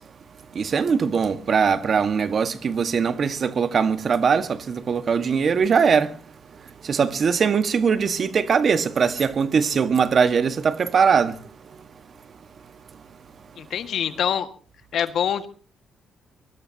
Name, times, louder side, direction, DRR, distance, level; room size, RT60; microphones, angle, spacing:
voice 1, 0.5-6.1 6.9-11.3, right 6 dB, 50° right, 1.6 m, -21 dB
voice 2, 13.6-14.5 14.9-15.5, left 9 dB, 70° left, 1.8 m, -25 dB
23.5 x 20.5 x 2.9 m
cardioid pair, 90°, 0 cm